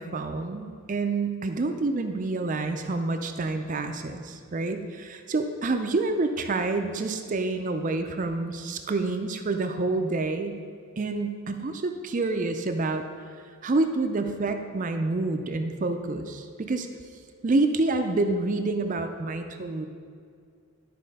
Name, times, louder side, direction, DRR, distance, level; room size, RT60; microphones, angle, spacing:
voice 1, 0.0-10.6 11.0-13.0 13.6-16.9 17.4-19.8, right 3 dB, 35° right, 6 dB, 0.4 m, -28 dB
11.0 x 4.2 x 5.3 m, 2.2 s
head